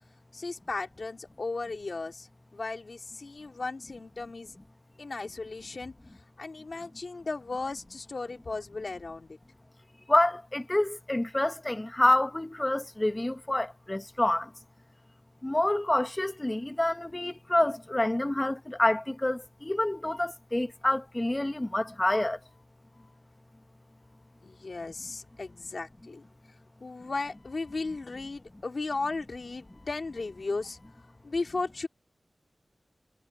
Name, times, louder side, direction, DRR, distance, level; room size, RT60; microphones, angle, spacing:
voice 1, 0.3-2.3 2.5-4.5 5.0-5.9 6.4-9.4 24.4-26.3 26.8-30.8 31.2-31.9, left 3 dB, 65° left, 3.7 m, -35 dB
voice 2, 10.1-14.5 15.4-22.4, left 1 dB, 25° left, 1.3 m, -27 dB
wide cardioid pair, 80°, 0 cm